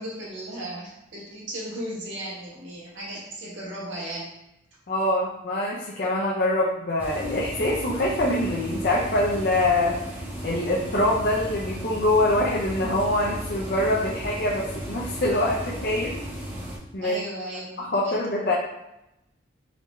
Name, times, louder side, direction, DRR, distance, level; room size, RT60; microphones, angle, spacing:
voice 1, 0.0-4.3 17.0-18.2, right 1 dB, 80° right, -5 dB, 1.5 m, -36 dB
voice 2, 4.9-10.0 10.4-16.2 16.9-17.2 17.8-18.5, left 1 dB, 55° left, -5 dB, 0.6 m, -24 dB
sound 1, 7.0-16.8, equal, 10° right, 0.8 m, -35 dB
3.9 x 3.3 x 3.1 m, 0.87 s
head